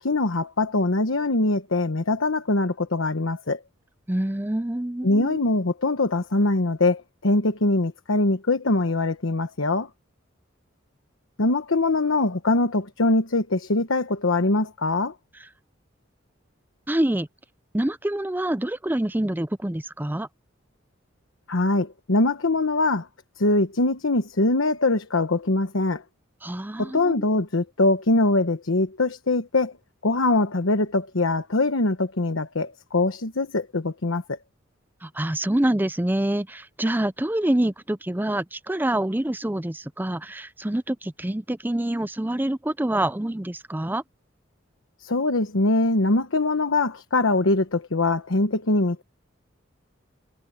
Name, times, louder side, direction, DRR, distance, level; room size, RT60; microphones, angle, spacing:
voice 1, 0.0-3.6 5.0-9.9 11.4-15.1 21.5-23.1 23.4-26.0 26.8-29.7 30.0-34.4 45.0-49.0, left 2 dB, 85° left, 1.1 m, -23 dB
voice 2, 4.1-5.4 16.9-17.3 17.7-20.3 26.4-27.2 35.0-44.0, right 1 dB, 10° right, 0.5 m, -26 dB
head